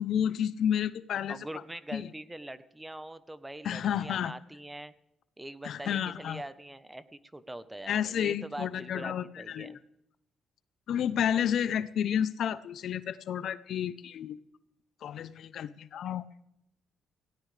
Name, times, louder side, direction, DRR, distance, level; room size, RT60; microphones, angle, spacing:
voice 1, 0.0-1.4 1.9-2.1 3.6-4.3 5.6-6.4 7.9-9.8 10.9-14.4 15.0-16.2, left 9 dB, 70° left, 15 dB, 0.7 m, -31 dB
voice 2, 1.3-4.9 5.4-9.8, right 1 dB, 10° right, 14 dB, 0.9 m, -43 dB
18.0 x 17.0 x 3.3 m, 0.80 s
cardioid pair, 90°, 0 cm